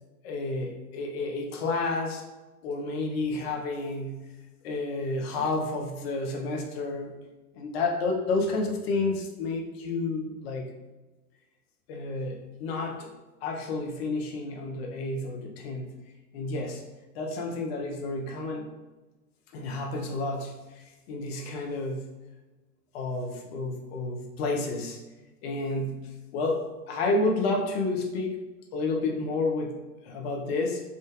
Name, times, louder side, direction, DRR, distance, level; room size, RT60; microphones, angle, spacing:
voice 1, 0.2-2.2 2.6-4.3 4.6-7.1 7.5-10.7 11.9-13.1 13.4-15.9 16.3-16.8 17.1-18.7 19.5-22.1 22.9-25.0 25.4-28.4 28.7-29.8 30.0-30.8, left 3 dB, 40° left, 2 dB, 0.6 m, -30 dB
3.6 x 2.5 x 2.3 m, 1.1 s
figure-of-eight pair, 90°, 47 cm